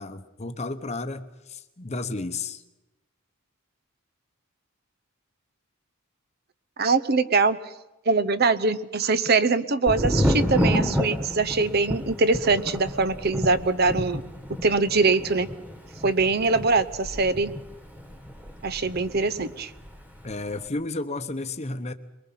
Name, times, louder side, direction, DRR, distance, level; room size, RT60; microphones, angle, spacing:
voice 1, 0.0-2.6 20.2-21.9, left 2 dB, 30° left, 10 dB, 0.9 m, -32 dB
voice 2, 6.8-7.6 8.1-14.2 14.6-15.5 16.0-17.5 18.6-19.7, right 3 dB, 50° right, 15 dB, 0.8 m, -23 dB
Thunder, 9.9-19.5 19.8-20.5, equal, 10° right, 1.9 m, -29 dB
23.0 x 22.5 x 5.8 m, 0.97 s
head